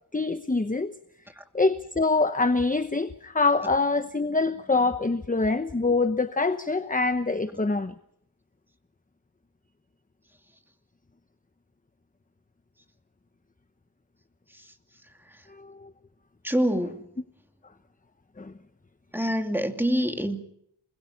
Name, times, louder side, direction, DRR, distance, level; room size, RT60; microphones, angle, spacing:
voice 1, 0.1-0.9 1.5-7.9 15.5-15.9 18.4-18.5, left 3 dB, 20° left, 0.9 m, -25 dB
voice 2, 16.4-17.1 19.1-20.4, equal, 5° right, 2.5 m, -26 dB
28.0 x 21.5 x 5.9 m
wide cardioid pair, 85°, 44 cm